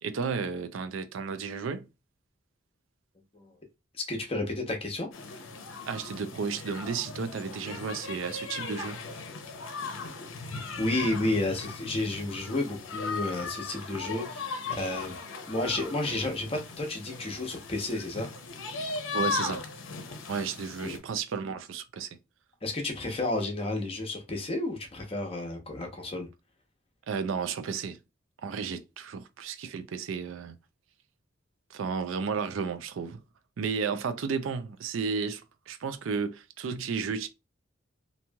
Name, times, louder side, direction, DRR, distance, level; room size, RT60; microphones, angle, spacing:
voice 1, 0.0-1.9 5.8-9.0 19.1-19.7 20.3-22.1 27.1-28.0 28.4-30.6 31.7-33.2 33.6-37.3, right 5 dB, 90° right, 0.4 m, -33 dB
voice 2, 3.9-5.1 10.8-15.2 15.5-18.3 20.8-21.0 22.6-26.3, left 2 dB, 30° left, 0.8 m, -31 dB
sound 1, 5.1-21.0, left 4 dB, 80° left, 0.6 m, -38 dB
3.0 x 2.6 x 2.2 m
head